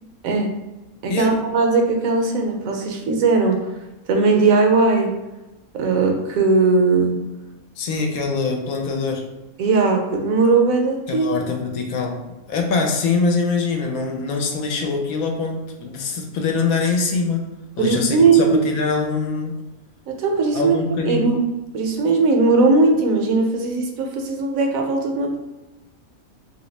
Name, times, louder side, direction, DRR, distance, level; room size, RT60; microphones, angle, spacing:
voice 1, 1.0-3.7 4.1-5.1 5.7-7.2 9.6-11.3 17.8-18.6 20.1-20.8 21.0-21.4 21.7-25.4, right 3 dB, 75° right, 3 dB, 1.0 m, -18 dB
voice 2, 7.8-9.2 11.1-12.2 12.5-17.5 17.8-19.6 20.5-21.3, left 4 dB, 80° left, 2 dB, 1.1 m, -23 dB
2.9 x 2.7 x 3.1 m, 1.1 s
omnidirectional pair, 1.5 m